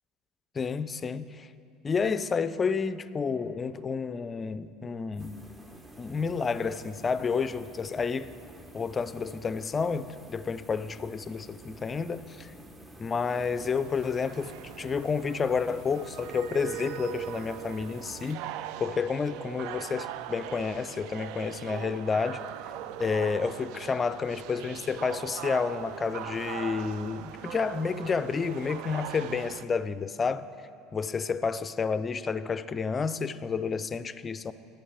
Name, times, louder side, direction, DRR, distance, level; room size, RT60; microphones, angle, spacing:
voice 1, 0.5-1.5 1.8-5.4 6.0-8.3 8.7-12.5 13.0-18.5 18.8-22.4 23.0-30.5 30.9-34.5, left 5 dB, 30° left, 0.4 m, -30 dB
sound 1, 5.1-18.3, right 1 dB, 20° right, 0.9 m, -50 dB
sound 2, 13.2-29.6, right 11 dB, 65° right, 0.3 m, -40 dB
9.8 x 5.8 x 8.2 m
hypercardioid pair, 65°, 0 cm